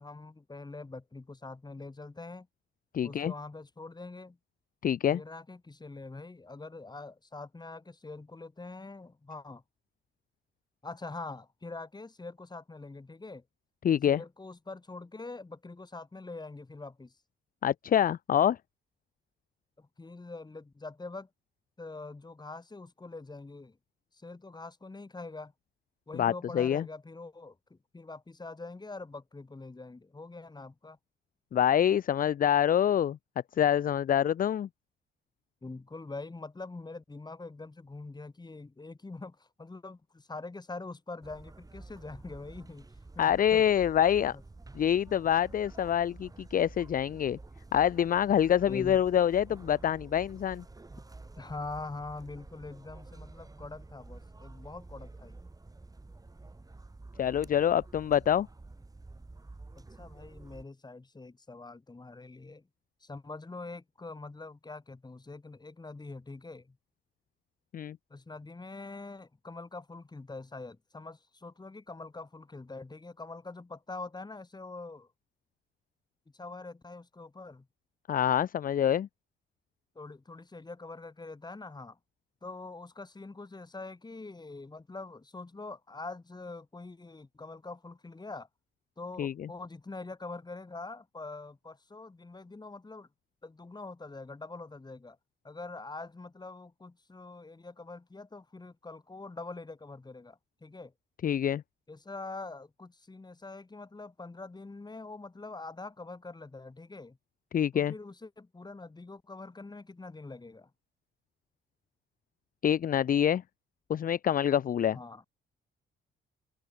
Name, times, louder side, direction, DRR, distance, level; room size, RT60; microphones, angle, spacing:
voice 1, 0.0-2.5 3.0-4.4 5.1-9.6 10.8-13.4 14.1-17.1 19.8-21.3 21.8-23.8 24.1-25.5 26.1-31.0 35.6-42.9 43.1-43.6 44.3-44.4 48.7-49.0 51.4-55.4 59.7-62.7 63.0-66.8 68.1-75.1 76.3-77.7 80.0-82.0 82.4-88.5 89.0-93.1 93.4-95.2 95.4-100.9 101.9-107.2 107.7-110.7 114.9-115.2, left 3 dB, 20° left, 5.6 m, -44 dB
voice 2, 2.9-3.3 4.8-5.2 13.8-14.2 17.6-18.6 26.1-26.8 31.5-33.2 33.6-34.7 43.2-44.4 44.8-47.4 47.7-50.6 57.2-58.5 67.7-68.0 78.1-79.1 89.2-89.5 101.2-101.6 107.5-107.9 112.6-113.4 113.9-115.0, left 9 dB, 45° left, 0.6 m, -26 dB
sound 1, 41.2-60.6, right 2 dB, 20° right, 4.4 m, -50 dB
open air
cardioid pair, 90°, 20 cm